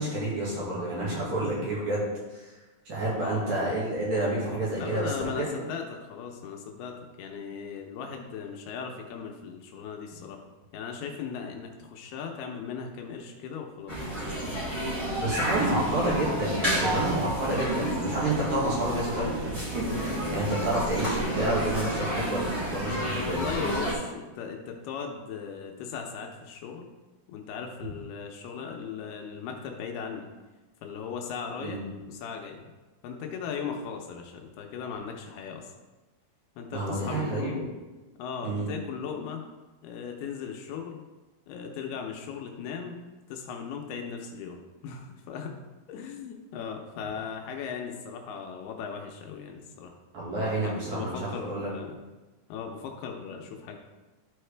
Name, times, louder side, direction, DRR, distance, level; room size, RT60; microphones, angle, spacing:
voice 1, 0.0-2.5 2.9-5.5 15.2-23.4 31.6-31.8 36.7-37.5 38.4-38.7 50.1-51.7, right 1 dB, 55° right, -6 dB, 2.9 m, -29 dB
voice 2, 3.2-3.5 4.7-10.4 10.7-14.1 14.9-15.7 20.4-20.5 22.8-26.9 27.3-30.3 30.8-31.8 32.1-32.7 33.0-35.7 36.6-37.6 38.2-39.4 39.8-41.1 41.5-43.0 43.3-45.6 45.9-49.9 50.6-52.0 52.5-53.8, left 6 dB, 80° left, 2 dB, 2.6 m, -38 dB
sound 1, 13.9-23.9, right 1 dB, 10° right, 2.0 m, -30 dB
12.0 x 4.6 x 3.3 m, 1.2 s
omnidirectional pair, 4.7 m